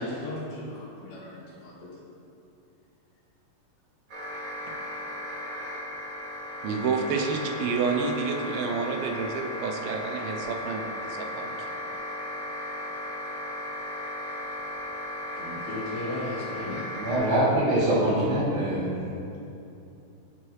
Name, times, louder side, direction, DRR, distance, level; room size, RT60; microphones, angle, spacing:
voice 1, 0.0-2.0 15.4-16.9, left 1 dB, 85° left, -7 dB, 3.6 m, -36 dB
sound 1, 4.1-17.2, left 1 dB, 45° right, 1.5 m, -36 dB
voice 2, 6.6-11.5, right 5 dB, 85° right, 3 dB, 2.5 m, -29 dB
voice 3, 17.0-19.0, right 1 dB, 60° right, -7 dB, 2.7 m, -24 dB
12.5 x 4.7 x 3.1 m, 2.7 s
omnidirectional pair, 4.2 m